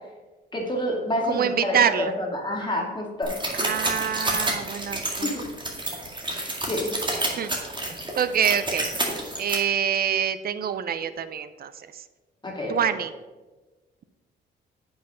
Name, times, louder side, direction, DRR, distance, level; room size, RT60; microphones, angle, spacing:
voice 1, 0.5-3.3 5.2-5.4 6.7-6.9 12.4-12.8, left 1 dB, 25° left, 0 dB, 2.3 m, -28 dB
voice 2, 1.2-2.1 3.5-5.3 7.3-7.5 8.2-8.9 9.4-12.0 12.7-13.1, right 8 dB, 50° right, 13 dB, 0.6 m, -26 dB
sound 1, 3.2-9.5, right 2 dB, 25° right, 2.1 m, -29 dB
8.2 x 5.7 x 5.4 m, 1.2 s
cardioid pair, 90°, 20 cm